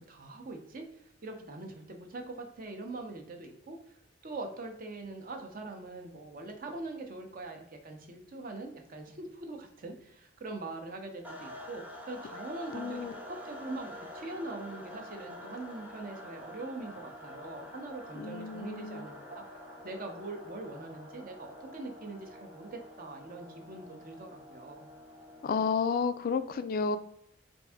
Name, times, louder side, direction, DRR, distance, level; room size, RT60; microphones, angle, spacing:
voice 1, 0.0-3.8 4.2-19.4 19.8-24.9, right 2 dB, 45° right, 4 dB, 0.7 m, -42 dB
sound 1, 11.2-26.0, left 1 dB, 10° right, 0.7 m, -47 dB
voice 2, 12.7-13.1 18.2-19.0 25.4-27.0, left 5 dB, 50° left, 11 dB, 0.3 m, -31 dB
4.6 x 2.6 x 3.4 m, 0.75 s
head